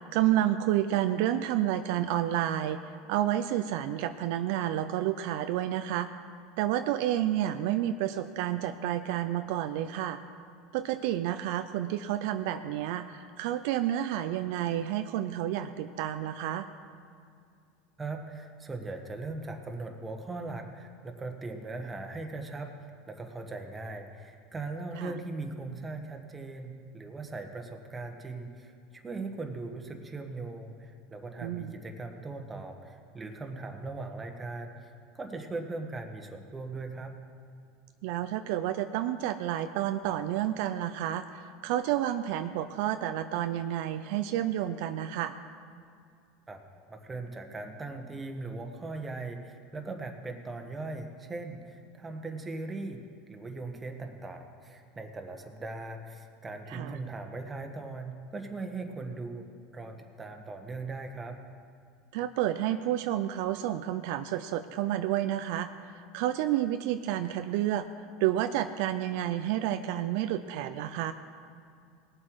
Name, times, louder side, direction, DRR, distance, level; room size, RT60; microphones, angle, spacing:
voice 1, 0.1-2.8 3.1-6.1 6.6-10.2 10.7-16.7 25.0-25.1 31.4-31.7 38.0-45.3 56.7-57.0 62.1-65.7 66.1-67.9 68.2-71.1, right 12 dB, 70° right, 9 dB, 0.5 m, -30 dB
voice 2, 18.0-22.7 23.1-34.7 35.1-37.1 46.5-46.6 46.9-53.0 53.3-59.4 59.7-61.4, right 3 dB, 15° right, 4 dB, 1.4 m, -39 dB
19.0 x 7.5 x 4.7 m, 2.4 s
supercardioid pair, 110°, 0 cm